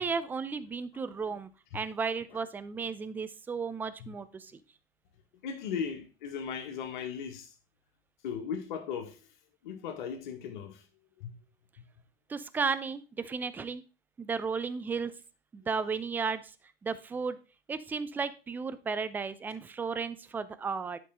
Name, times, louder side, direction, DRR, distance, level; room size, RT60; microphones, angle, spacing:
voice 1, 0.0-4.6 12.3-13.8 14.2-15.2 15.5-16.5 16.8-17.4 17.7-21.0, right 5 dB, 5° right, 0.4 m, -34 dB
voice 2, 5.4-7.5 8.2-9.2 9.6-10.8 11.2-11.3, left 7 dB, 50° left, 1.8 m, -37 dB
11.0 x 5.7 x 3.8 m
figure-of-eight pair, 95°, 30 cm